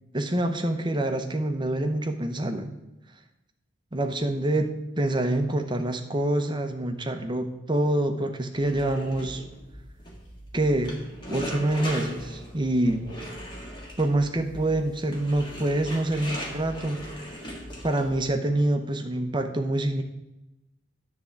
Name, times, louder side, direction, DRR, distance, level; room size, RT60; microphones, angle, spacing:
voice 1, 0.1-2.7 3.9-9.4 10.5-10.9 11.3-13.1 14.0-17.2 17.8-20.0, right 1 dB, 25° right, 6 dB, 0.7 m, -26 dB
sound 1, 8.5-18.3, equal, 25° left, 1.6 m, -39 dB
10.0 x 3.6 x 7.0 m, 0.94 s
head